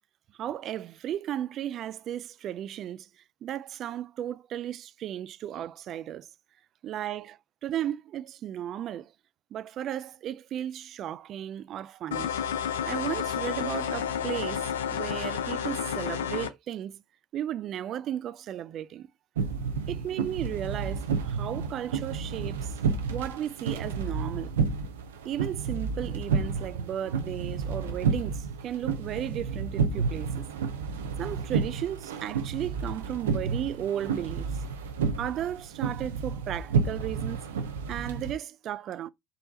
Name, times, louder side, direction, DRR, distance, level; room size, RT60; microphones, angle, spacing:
voice 1, 0.4-3.1 3.4-6.3 6.8-9.1 9.5-12.3 12.8-17.0 17.3-19.1 19.9-22.7 23.1-24.5 25.2-30.5 31.2-34.6 35.2-37.4 37.9-39.1, right 11 dB, 55° right, 0.3 m, -35 dB
sound 1, 12.1-16.5, left 8 dB, 85° left, 0.4 m, -31 dB
sound 2, 19.4-38.3, right 5 dB, 85° right, 0.6 m, -31 dB
4.0 x 2.7 x 3.9 m
hypercardioid pair, 70°, 0 cm